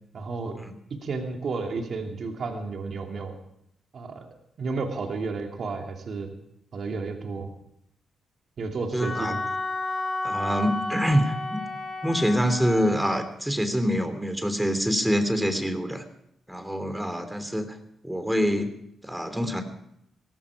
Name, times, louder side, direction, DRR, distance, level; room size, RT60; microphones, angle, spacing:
voice 1, 0.1-0.6 0.9-3.4 3.9-4.3 4.6-6.3 6.7-7.5 8.6-9.5, right 4 dB, 60° right, 3 dB, 2.7 m, -32 dB
voice 2, 8.9-9.3 10.2-11.6 12.0-16.0 16.5-17.8 18.0-18.7 19.0-19.6, equal, 5° right, 8 dB, 2.9 m, -25 dB
Wind instrument woodwind instrument, 9.0-13.2, left 2 dB, 30° left, 6.9 m, -32 dB
17.5 x 15.5 x 4.9 m, 0.76 s
hypercardioid pair, 45°, 0 cm